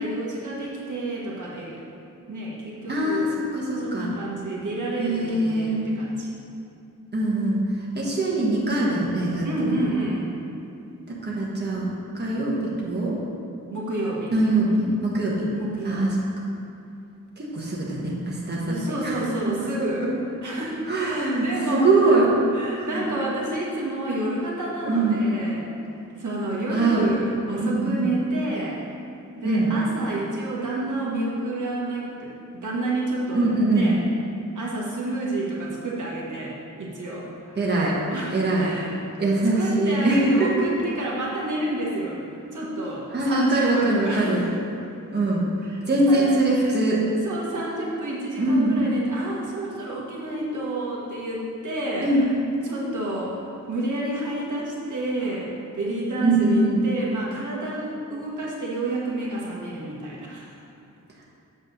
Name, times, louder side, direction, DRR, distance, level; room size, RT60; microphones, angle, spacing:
voice 1, 0.0-1.8 2.3-3.3 3.8-6.3 9.4-10.3 13.7-14.3 15.5-16.1 18.7-20.0 20.4-22.2 22.5-25.7 26.2-28.8 29.4-34.0 34.5-37.7 38.1-39.0 39.6-44.5 45.6-46.3 46.6-47.0 47.2-52.4 52.6-60.5, right 2 dB, 70° right, -5 dB, 1.5 m, -29 dB
voice 2, 2.9-4.1 5.0-5.8 7.1-7.6 7.9-9.8 11.1-11.9 12.2-13.1 14.3-15.5 15.8-16.1 17.4-18.8 19.0-19.1 20.9-22.2 22.8-23.0 24.8-25.2 26.7-27.1 27.6-28.0 29.4-29.7 33.3-33.9 37.6-37.9 38.3-38.7 39.2-40.3 43.1-44.4 45.1-45.4 45.9-47.0 48.4-48.8 52.0-52.2 56.2-56.8, right 2 dB, 30° right, -5 dB, 1.3 m, -22 dB
8.2 x 3.5 x 6.6 m, 2.6 s
wide cardioid pair, 115°, 32 cm